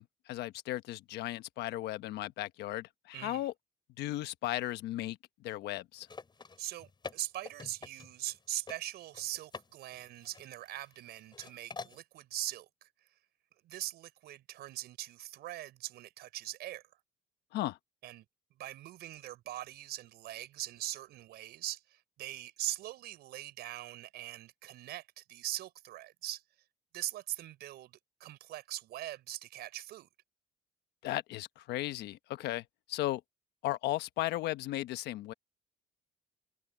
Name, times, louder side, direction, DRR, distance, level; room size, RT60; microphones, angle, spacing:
voice 1, 0.0-3.5 4.0-5.2 5.4-6.1 17.5-17.8 31.0-33.2 33.6-35.3, left 15 dB, 80° left, 1.1 m, -36 dB
voice 2, 3.1-3.5 6.6-12.9 13.6-16.8 18.0-18.2 18.6-26.4 26.9-27.9 28.2-30.1, right 14 dB, 75° right, 4.9 m, -41 dB
sound 1, 6.0-8.4 8.7-8.8 9.1-9.7 9.9-11.0 11.3-12.0, left 4 dB, 25° left, 5.9 m, -46 dB
cardioid pair, 110°, 17 cm